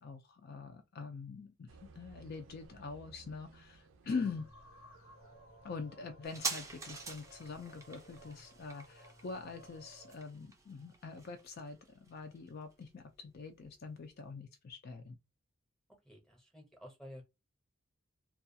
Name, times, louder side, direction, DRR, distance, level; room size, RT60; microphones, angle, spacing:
voice 1, 0.0-1.7 2.0-4.4 5.6-15.2, left 4 dB, 50° left, 0.4 m, -44 dB
sound 1, 1.7-8.1, right 3 dB, 70° right, 0.4 m, -61 dB
sound 2, 4.1-10.2, right 1 dB, 85° left, 1.0 m, -58 dB
sound 3, 6.2-13.3 13.6-13.7, right 4 dB, 15° right, 0.4 m, -45 dB
voice 2, 16.0-17.2, equal, 5° left, 0.8 m, -52 dB
2.3 x 2.3 x 2.6 m
head